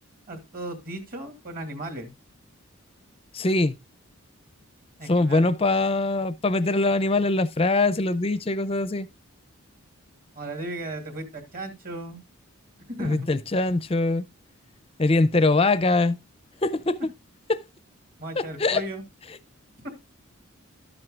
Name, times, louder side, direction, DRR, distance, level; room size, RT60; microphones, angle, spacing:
voice 1, 0.3-2.1 5.0-5.5 10.4-12.2 13.0-13.3 18.2-19.0 19.8-19.9, right 1 dB, 40° right, 2.4 m, -35 dB
voice 2, 3.3-3.8 5.1-9.1 13.0-14.2 15.0-16.2 16.6-17.0 17.5-17.6 18.4-18.8, left 2 dB, 25° left, 0.5 m, -22 dB
12.5 x 7.7 x 2.4 m
head